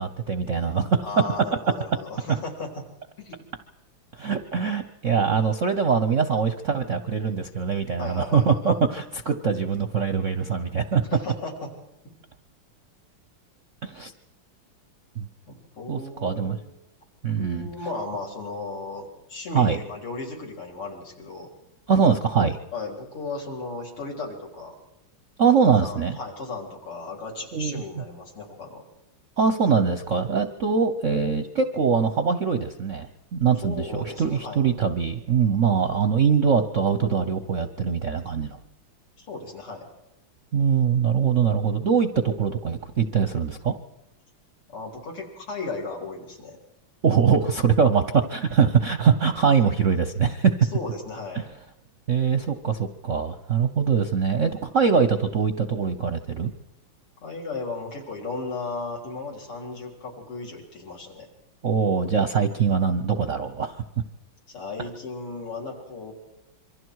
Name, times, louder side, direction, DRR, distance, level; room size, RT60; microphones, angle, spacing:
voice 1, 0.0-1.0 4.2-11.0 13.8-14.1 15.2-15.3 15.9-16.6 17.2-17.7 19.5-19.8 21.9-22.6 25.4-26.2 27.5-27.8 29.4-38.6 40.5-43.8 47.0-50.7 51.3-51.4 52.1-56.5 61.6-63.8, right 6 dB, 55° right, 8 dB, 0.8 m, -23 dB
voice 2, 1.0-2.7 3.2-3.5 8.0-8.8 10.4-10.5 11.1-11.7 15.5-16.6 17.4-21.5 22.7-24.7 25.7-28.8 33.6-34.6 39.2-39.8 44.7-46.6 50.7-51.4 57.2-61.3 64.5-66.1, left 3 dB, 80° left, -1 dB, 4.9 m, -35 dB
26.5 x 24.0 x 4.7 m, 0.90 s
omnidirectional pair, 2.4 m